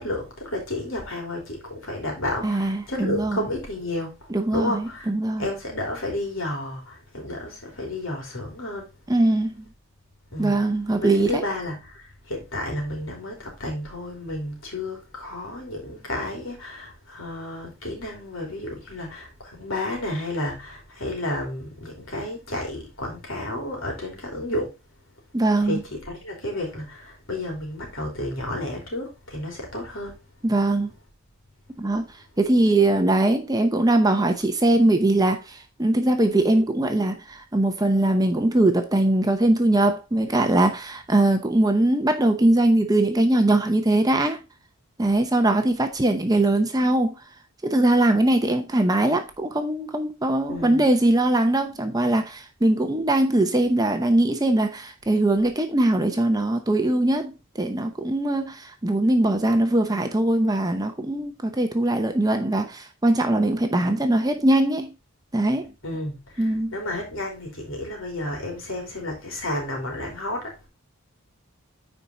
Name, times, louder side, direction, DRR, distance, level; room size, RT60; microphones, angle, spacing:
voice 1, 0.0-5.1 5.4-8.9 10.3-10.6 11.0-24.7 25.7-30.1 50.5-50.8 65.8-70.6, left 1 dB, 60° left, 3.6 m, -31 dB
voice 2, 2.4-3.4 4.3-5.4 9.1-9.5 10.4-11.4 25.3-25.8 30.4-30.9 31.8-32.0 32.4-44.4 45.0-47.2 47.6-64.9 65.3-65.7 66.4-66.7, right 1 dB, 15° right, 0.8 m, -21 dB
9.7 x 4.7 x 3.8 m
head